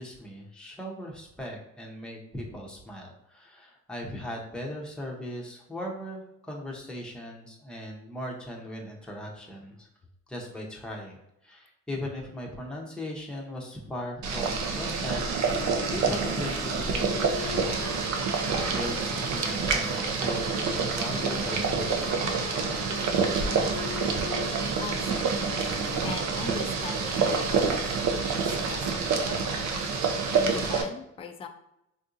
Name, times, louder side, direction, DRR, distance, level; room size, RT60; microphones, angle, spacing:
voice 1, 0.0-9.9 10.3-15.2 15.6-17.8 18.5-22.2, left 1 dB, 5° left, -2 dB, 0.7 m, -38 dB
Boiling, 14.2-30.8, right 5 dB, 65° right, 0.6 m, -27 dB
Wind instrument woodwind instrument, 14.7-20.6 21.2-27.1, left 7 dB, 65° left, 0.6 m, -43 dB
voice 2, 24.8-29.6 30.4-31.5, left 4 dB, 20° left, 5 dB, 0.3 m, -40 dB
3.7 x 2.6 x 2.5 m, 0.85 s
cardioid pair, 90°, 30 cm